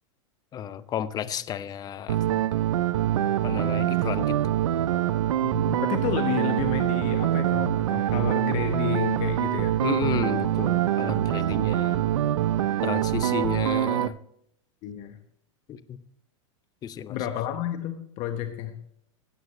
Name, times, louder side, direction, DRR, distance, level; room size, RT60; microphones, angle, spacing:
voice 1, 0.5-2.2 3.4-4.5 9.8-12.1 12.8-14.2 15.7-16.0 16.8-17.2, left 9 dB, 25° left, 15 dB, 0.6 m, -32 dB
sound 1, 2.1-14.1, right 12 dB, 85° right, 0.5 m, -24 dB
voice 2, 5.4-9.8 14.8-15.2 17.1-18.7, left 10 dB, 40° left, 7 dB, 1.0 m, -31 dB
16.5 x 8.0 x 3.0 m, 0.70 s
hypercardioid pair, 125°, 16 cm